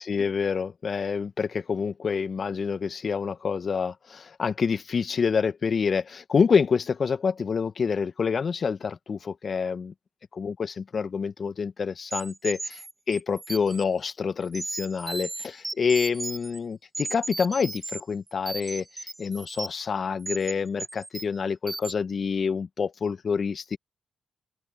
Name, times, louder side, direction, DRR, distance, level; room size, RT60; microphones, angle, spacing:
voice 1, 0.0-9.9 10.3-12.8 13.1-23.8, left 5 dB, 50° left, 1.6 m, -27 dB
sound 1, 12.1-13.8 14.4-16.6 16.9-18.0 18.3-19.8 20.2-20.5 20.8-21.4 21.7-21.9, right 2 dB, 25° right, 3.6 m, -36 dB
open air
hypercardioid pair, 45°, 0 cm